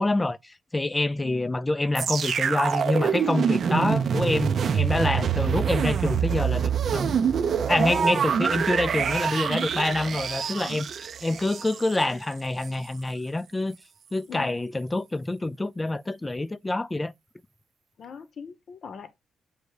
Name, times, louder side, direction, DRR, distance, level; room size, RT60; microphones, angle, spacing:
voice 1, 0.0-7.2 7.7-10.9 11.2-13.8 14.1-17.1, left 2 dB, 15° left, 0.4 m, -26 dB
sound 1, 1.9-12.0 12.6-12.7, right 7 dB, 55° right, 0.5 m, -25 dB
voice 2, 7.3-7.7 14.3-14.6 18.0-19.1, left 7 dB, 55° left, 0.7 m, -42 dB
8.0 x 2.7 x 4.7 m
cardioid pair, 120°, 0 cm